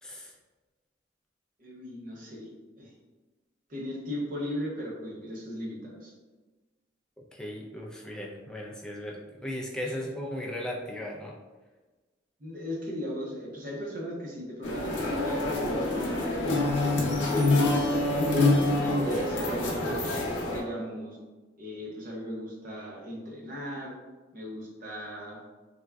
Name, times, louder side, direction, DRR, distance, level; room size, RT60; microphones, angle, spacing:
voice 1, 0.0-0.3 7.3-11.4, left 1 dB, 5° left, -2 dB, 0.3 m, -37 dB
voice 2, 1.6-2.5 2.8-2.9 3.7-6.1 9.8-9.9 12.4-16.6 17.2-18.1 18.8-20.2 20.5-21.2 21.6-23.9 24.3-25.4, equal, 45° right, -2 dB, 0.6 m, -37 dB
sound 1, 14.6-20.6, left 2 dB, 90° left, 0.7 m, -26 dB
3.4 x 2.1 x 2.2 m, 1.2 s
head